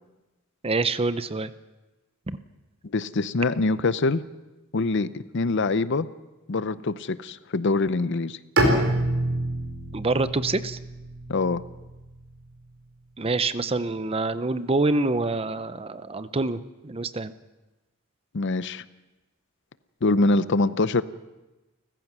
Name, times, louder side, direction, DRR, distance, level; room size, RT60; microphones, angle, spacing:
voice 1, 0.6-1.5 2.3-2.4 9.9-10.8 13.2-17.3, right 3 dB, 25° right, 13 dB, 0.6 m, -26 dB
voice 2, 2.9-4.2 4.7-6.1 6.5-8.4 11.3-11.6 18.3-18.8 20.0-21.0, left 3 dB, 55° left, 15 dB, 0.7 m, -24 dB
Bowed string instrument, 8.6-12.5, right 1 dB, 65° right, 4.4 m, -27 dB
29.5 x 15.0 x 6.1 m, 1.1 s
head